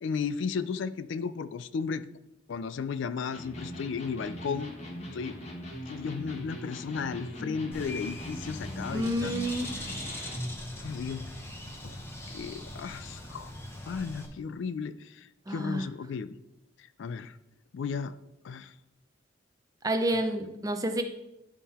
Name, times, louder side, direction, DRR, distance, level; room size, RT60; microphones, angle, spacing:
voice 1, 0.0-2.1 2.5-4.7 5.1-5.4 5.9-9.3 10.8-11.3 11.8-13.5 13.9-16.4 17.0-17.4 17.7-18.1 18.4-18.7, left 5 dB, 70° left, 14 dB, 0.4 m, -34 dB
Electric guitar, 3.3-10.6, equal, 35° left, 1.3 m, -41 dB
Bird, 7.7-14.3, left 1 dB, 15° left, 0.9 m, -41 dB
voice 2, 8.9-9.7 15.5-15.9 19.8-21.0, right 1 dB, 20° right, 5 dB, 0.6 m, -29 dB
11.0 x 3.7 x 4.2 m, 0.89 s
head